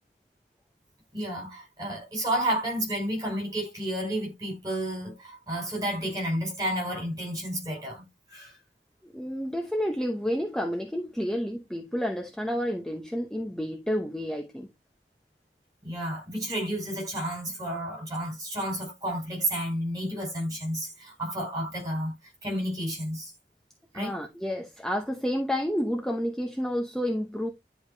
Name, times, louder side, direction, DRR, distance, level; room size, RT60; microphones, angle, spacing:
voice 1, 1.1-8.6 15.8-22.1 22.4-23.3 23.9-24.1, right 1 dB, 20° right, 5.5 m, -31 dB
voice 2, 9.0-14.7 23.9-27.5, equal, 5° left, 0.8 m, -30 dB
10.5 x 5.0 x 2.8 m
head